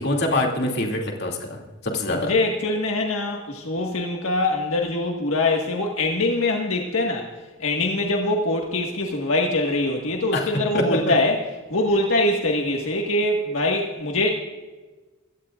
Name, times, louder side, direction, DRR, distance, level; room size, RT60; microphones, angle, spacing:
voice 1, 0.0-2.3 10.3-10.5 10.7-11.1, left 1 dB, 50° left, 0 dB, 2.6 m, -24 dB
voice 2, 2.2-7.3 7.6-11.4 11.7-14.3, left 2 dB, 75° left, 0 dB, 1.7 m, -23 dB
23.5 x 16.5 x 2.5 m, 1.2 s
head